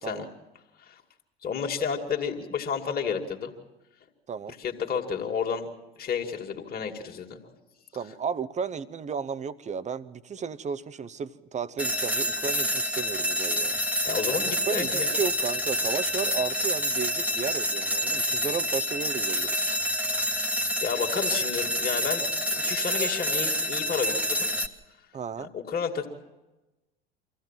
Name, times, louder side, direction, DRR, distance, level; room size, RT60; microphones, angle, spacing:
voice 1, 1.4-3.5 4.6-5.7 6.0-7.4 14.0-15.1 20.8-24.5 25.4-26.1, left 6 dB, 30° left, 2 dB, 2.4 m, -31 dB
voice 2, 7.9-13.8 14.7-19.7 25.1-25.5, right 6 dB, 25° right, 14 dB, 0.8 m, -33 dB
Fire Alarm, 11.8-24.7, equal, 5° right, 1.4 m, -28 dB
24.5 x 15.5 x 7.5 m, 1.1 s
figure-of-eight pair, 75°, 30 cm